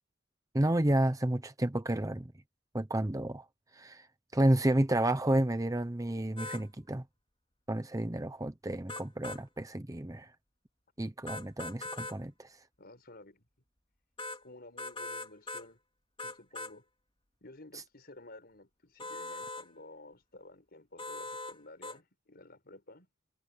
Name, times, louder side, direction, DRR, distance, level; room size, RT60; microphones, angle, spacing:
voice 1, 0.5-2.3 2.7-3.4 3.7-4.1 4.3-7.0 7.7-10.3 11.0-12.6, right 1 dB, 15° right, 0.8 m, -30 dB
sound 1, 6.4-6.6 8.9-9.4 11.3-12.2 14.2-14.4 14.8-15.7 16.2-16.7 19.0-19.7 21.0-21.6 21.8-22.0, left 2 dB, 25° left, 3.6 m, -40 dB
voice 2, 12.8-13.4 14.4-15.8 16.2-16.8 17.4-23.1, left 2 dB, 50° left, 5.0 m, -53 dB
head